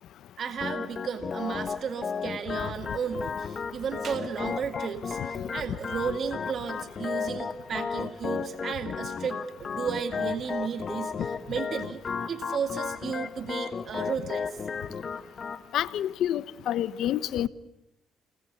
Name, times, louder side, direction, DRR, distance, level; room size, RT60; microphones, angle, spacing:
voice 1, 0.4-14.6, right 6 dB, 55° right, 2.1 m, -34 dB
Organ, 0.6-15.6, left 5 dB, 45° left, 1.5 m, -34 dB
voice 2, 15.7-17.5, left 11 dB, 80° left, 1.0 m, -28 dB
29.5 x 21.0 x 8.3 m
cardioid pair, 90°, 0 cm